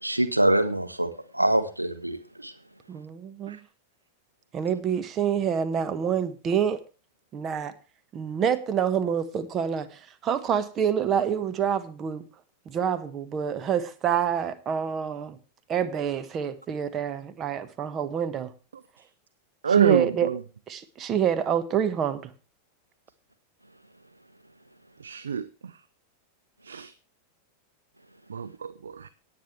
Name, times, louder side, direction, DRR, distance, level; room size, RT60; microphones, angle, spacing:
voice 1, 0.0-2.5, right 1 dB, 85° right, 1.6 m, -25 dB
voice 2, 2.9-3.6 4.5-6.8 7.3-7.7 8.1-12.2 12.7-15.4 15.7-18.5 19.8-20.3 20.7-22.3, right 8 dB, 30° right, 1.3 m, -27 dB
voice 3, 19.6-20.4 25.0-25.7 26.6-26.9 28.3-29.1, right 7 dB, 70° right, 0.7 m, -26 dB
18.5 x 8.9 x 3.2 m
figure-of-eight pair, 90°, 0 cm